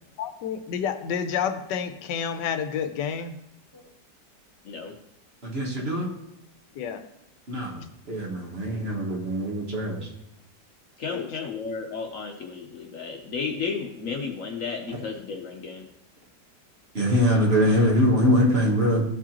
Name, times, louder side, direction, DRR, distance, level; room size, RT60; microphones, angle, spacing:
voice 1, 0.2-3.3 6.7-7.0 11.1-11.5, left 7 dB, 85° left, 9 dB, 1.3 m, -30 dB
voice 2, 4.6-5.0 11.0-15.9, left 5 dB, 60° left, 3 dB, 1.0 m, -33 dB
voice 3, 5.4-6.1 7.5-7.8 8.1-10.1 16.9-19.0, equal, 40° right, -2 dB, 1.4 m, -23 dB
13.0 x 4.7 x 2.9 m, 0.82 s
omnidirectional pair, 1.8 m